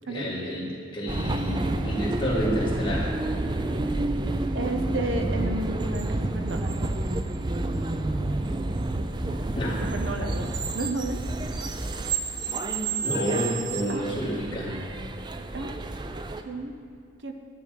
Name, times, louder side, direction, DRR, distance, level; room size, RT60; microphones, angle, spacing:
voice 1, 0.1-3.1 9.6-9.8 13.0-14.8, equal, 25° left, -5 dB, 2.0 m, -29 dB
sound 1, 1.1-16.4, right 2 dB, 25° right, 0.4 m, -29 dB
voice 2, 4.5-6.8 9.6-10.5 10.7-11.2 13.2-13.3 13.9-14.1 15.5-15.7 16.5-16.8 17.2-17.3, right 2 dB, 70° right, 5 dB, 0.7 m, -32 dB
10.5 x 8.9 x 5.0 m, 2.2 s
head